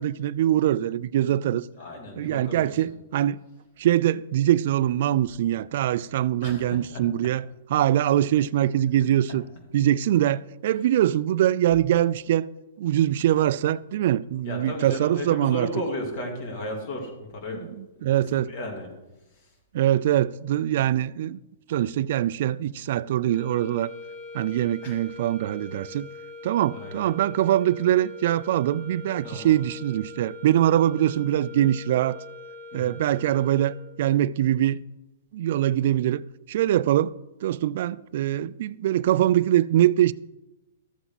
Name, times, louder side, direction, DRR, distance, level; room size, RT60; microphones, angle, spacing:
voice 1, 0.0-1.6 2.2-3.4 3.8-7.4 7.7-9.4 9.7-12.5 12.8-15.7 18.0-18.5 19.7-21.4 21.7-23.9 24.3-26.1 26.4-32.2 32.7-34.8 35.3-36.2 36.5-37.1 37.4-40.1, right 12 dB, 60° right, 0.3 m, -23 dB
voice 2, 1.7-2.9 6.4-7.3 9.0-9.4 14.4-17.7 18.0-19.0 19.3-19.6 24.8-25.0 26.7-27.0 29.2-29.6 32.7-32.9, left 1 dB, 55° left, 3.2 m, -35 dB
sound 1, 23.2-34.1, left 3 dB, 30° left, 3.4 m, -42 dB
13.5 x 7.8 x 4.1 m
hypercardioid pair, 140°, 0 cm